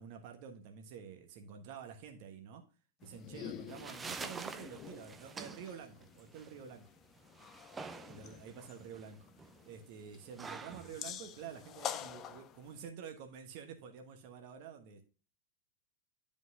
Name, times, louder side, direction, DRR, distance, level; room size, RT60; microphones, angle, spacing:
voice 1, 0.0-2.6 3.0-6.9 8.1-9.3 9.6-15.0, right 7 dB, 45° right, 4 dB, 1.2 m, -49 dB
sound 1, 3.0-12.9, left 10 dB, 30° left, 0.5 m, -48 dB
sound 2, 3.4-12.4, right 4 dB, 15° right, 0.6 m, -48 dB
11.0 x 5.2 x 2.7 m, 0.35 s
figure-of-eight pair, 90°, 0 cm